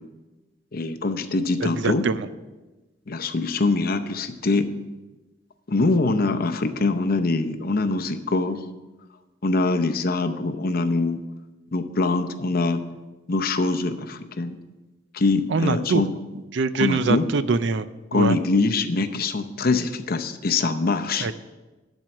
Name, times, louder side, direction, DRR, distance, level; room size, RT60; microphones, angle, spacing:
voice 1, 0.7-2.1 3.1-4.7 5.7-8.6 9.4-11.2 11.7-12.8 13.3-14.6 15.1-16.1 16.8-17.3 18.1-21.3, left 3 dB, 55° left, 8 dB, 0.7 m, -23 dB
voice 2, 1.6-2.2 15.5-16.0 16.5-17.9 18.1-18.4 21.2-21.3, right 4 dB, 70° right, 14 dB, 0.5 m, -23 dB
12.0 x 4.6 x 7.2 m, 1.1 s
head